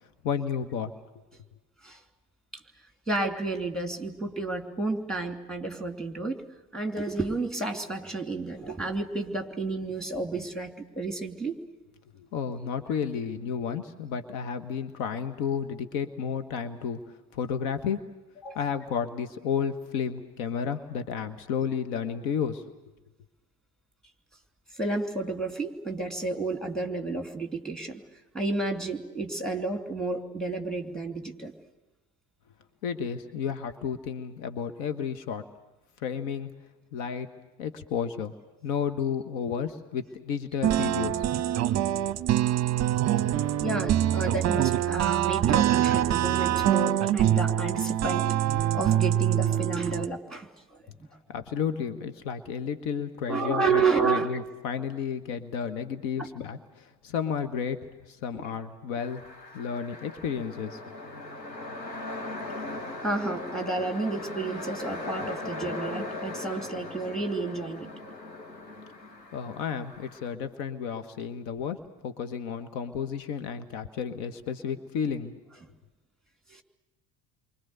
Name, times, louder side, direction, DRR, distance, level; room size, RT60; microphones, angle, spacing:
voice 1, 0.2-0.9 12.1-18.0 18.5-22.6 32.8-35.5 36.0-36.5 36.9-37.3 37.6-38.3 38.6-41.3 51.3-57.8 58.1-59.2 59.5-60.8 69.3-75.3, left 7 dB, 60° left, 10 dB, 1.3 m, -32 dB
voice 2, 3.1-6.5 6.7-11.6 18.4-18.6 24.7-28.0 28.3-31.5 43.6-48.3 48.7-50.9 53.3-54.4 56.2-56.3 58.3-58.4 63.0-67.9 76.5-76.6, right 3 dB, ahead, 5 dB, 2.8 m, -31 dB
sound 1, 40.6-50.1, right 12 dB, 35° right, 0.8 m, -25 dB
sound 2, 59.0-70.3, left 2 dB, 85° left, 1.8 m, -39 dB
29.0 x 24.0 x 6.8 m, 1.1 s
figure-of-eight pair, 60°, 49 cm